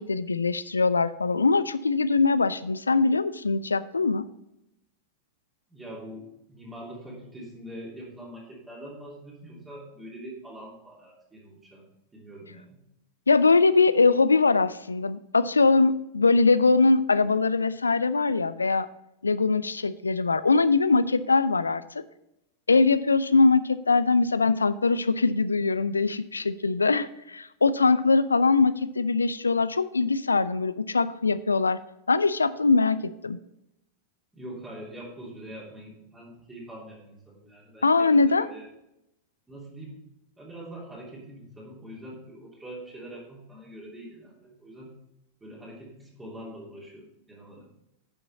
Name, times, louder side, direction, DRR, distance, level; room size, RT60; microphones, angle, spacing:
voice 1, 0.0-4.3 13.3-18.9 19.2-22.0 22.7-31.8 32.1-33.4 37.8-38.5, left 4 dB, 75° left, 16 dB, 0.4 m, -22 dB
voice 2, 5.7-11.9 12.1-12.8 34.3-38.7 39.5-40.0 40.4-44.9 45.4-47.7, right 1 dB, 10° right, -4 dB, 3.0 m, -43 dB
10.0 x 6.9 x 4.1 m, 0.85 s
figure-of-eight pair, 90°, 0 cm